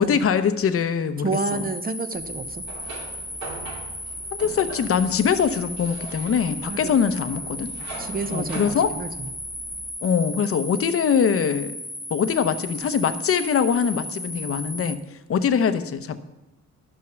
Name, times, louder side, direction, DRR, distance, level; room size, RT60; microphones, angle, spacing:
voice 1, 0.0-1.3 4.3-7.7 8.3-8.9 10.0-11.7 12.1-15.0 15.3-16.2, left 7 dB, 50° left, 11 dB, 0.8 m, -22 dB
voice 2, 1.2-2.6 6.6-7.0 8.0-9.3, right 4 dB, 30° right, 10 dB, 0.9 m, -30 dB
sound 1, 1.3-15.0, left 1 dB, 5° right, 1.3 m, -35 dB
sound 2, 2.1-9.9, right 3 dB, 75° right, 3.2 m, -41 dB
12.0 x 6.3 x 6.0 m, 1.0 s
cardioid pair, 90°, 30 cm